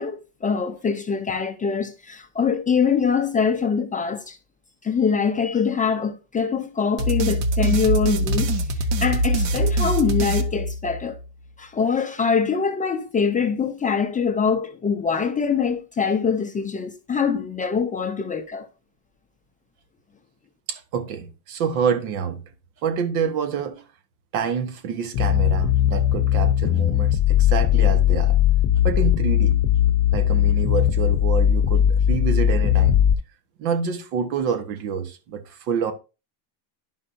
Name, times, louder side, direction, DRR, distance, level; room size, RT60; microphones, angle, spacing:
voice 1, 0.0-4.4 4.8-11.2 11.6-18.7, left 6 dB, 15° left, 0.4 m, -24 dB
sound 1, 7.0-11.3, right 1 dB, 60° right, 1.1 m, -23 dB
voice 2, 20.7-22.4 22.8-23.8 24.3-28.4 28.8-29.6 30.1-33.0 33.6-35.9, right 6 dB, 85° right, 1.4 m, -27 dB
sound 2, 25.1-33.1, left 11 dB, 45° left, 0.7 m, -19 dB
11.0 x 5.5 x 2.6 m
cardioid pair, 130°, 49 cm